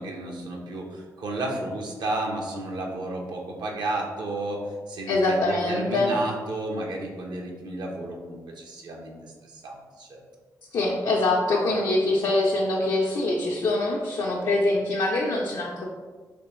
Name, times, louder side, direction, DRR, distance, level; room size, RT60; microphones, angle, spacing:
voice 1, 0.0-10.2, right 2 dB, 80° right, 0 dB, 0.7 m, -32 dB
voice 2, 5.1-6.1 10.7-15.8, left 2 dB, 85° left, -4 dB, 0.5 m, -24 dB
3.4 x 3.3 x 3.0 m, 1.4 s
cardioid pair, 70°, 7 cm